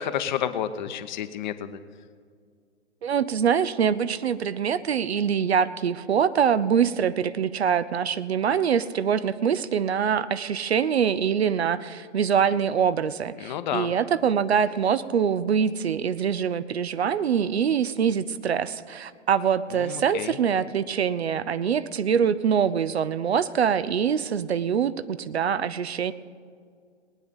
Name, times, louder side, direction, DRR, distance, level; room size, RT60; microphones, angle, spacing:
voice 1, 0.0-1.8 13.4-13.9 19.8-20.4, left 10 dB, 40° left, 11 dB, 0.9 m, -30 dB
voice 2, 3.0-26.1, right 7 dB, 65° right, 15 dB, 0.6 m, -24 dB
19.5 x 9.3 x 5.3 m, 2.1 s
figure-of-eight pair, 115°, 35 cm